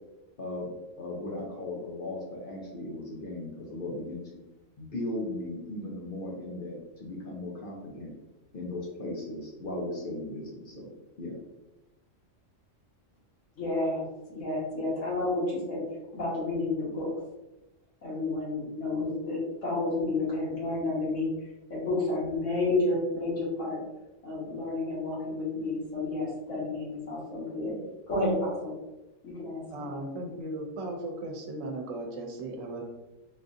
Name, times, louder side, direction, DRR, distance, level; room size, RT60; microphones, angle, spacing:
voice 1, 0.4-4.4 4.8-8.1 8.5-10.9 11.2-11.4, left 2 dB, 50° left, -3 dB, 0.7 m, -37 dB
voice 2, 13.6-15.8 16.1-17.1 18.0-21.3 21.7-23.8 24.2-27.8 28.1-28.7 29.2-29.8, left 2 dB, 70° left, -6 dB, 1.6 m, -30 dB
voice 3, 29.7-32.8, right 1 dB, 90° right, 1 dB, 1.0 m, -36 dB
3.7 x 2.5 x 2.5 m, 1.0 s
omnidirectional pair, 1.4 m